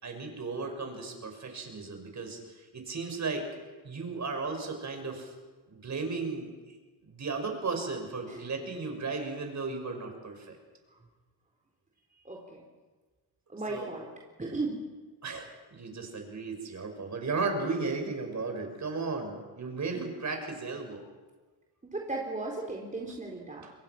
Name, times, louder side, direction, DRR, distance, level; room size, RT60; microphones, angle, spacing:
voice 1, 0.0-3.5 3.8-5.3 5.7-6.5 7.1-10.6 13.7-13.9 15.2-21.0 23.6-23.7, right 4 dB, 35° right, 4 dB, 6.1 m, -35 dB
voice 2, 12.2-12.6 13.5-14.1 14.4-14.9 21.8-23.6, right 2 dB, 15° right, -1 dB, 4.2 m, -36 dB
26.5 x 22.0 x 6.1 m, 1.3 s
cardioid pair, 95°, 46 cm